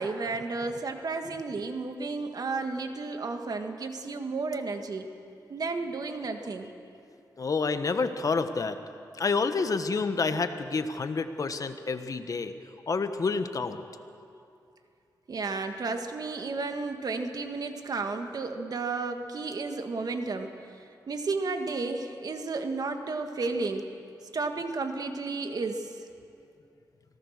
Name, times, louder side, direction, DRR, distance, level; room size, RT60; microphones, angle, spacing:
voice 1, 0.0-5.1 5.5-6.7 15.3-20.5 21.1-23.9 24.3-25.9, right 3 dB, 60° right, 6 dB, 1.8 m, -32 dB
voice 2, 7.4-8.8 9.2-12.5 12.9-13.8, left 4 dB, 50° left, 9 dB, 1.3 m, -28 dB
25.0 x 17.5 x 6.7 m, 2.5 s
cardioid pair, 70°, 7 cm